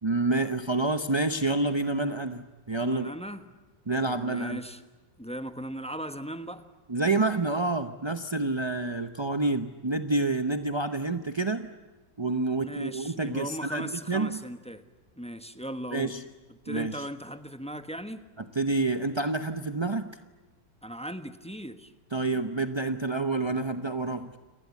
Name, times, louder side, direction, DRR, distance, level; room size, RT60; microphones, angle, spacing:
voice 1, 0.0-3.1 3.9-4.6 6.9-11.7 12.2-14.4 15.9-16.2 16.7-17.0 18.5-20.1 22.1-24.3, right 2 dB, 40° right, 8 dB, 0.4 m, -28 dB
voice 2, 2.8-3.4 4.1-4.8 5.2-6.6 12.6-14.8 15.2-16.1 16.6-18.2 20.8-21.9, equal, 5° left, 9 dB, 1.0 m, -38 dB
29.0 x 20.0 x 8.4 m, 1.3 s
omnidirectional pair, 1.9 m